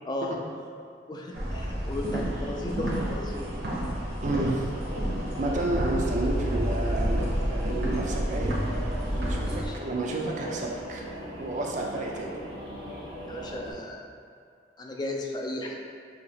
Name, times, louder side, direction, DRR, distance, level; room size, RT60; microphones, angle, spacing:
voice 1, 0.0-0.4 1.1-3.5 9.4-9.7 13.3-14.0 14.8-15.7, left 1 dB, 25° left, 0 dB, 0.4 m, -35 dB
sound 1, 1.3-9.7, equal, 60° right, 0.9 m, -29 dB
sound 2, 1.5-13.5, right 2 dB, 90° right, 0.9 m, -44 dB
voice 2, 4.2-4.7 5.4-8.6 9.2-11.0 11.4-12.4, right 2 dB, 40° right, -1 dB, 0.4 m, -31 dB
Boat Water vehicle / Engine, 4.7-13.7, left 1 dB, 80° left, 1.2 m, -41 dB
5.6 x 2.8 x 2.8 m, 2.2 s
head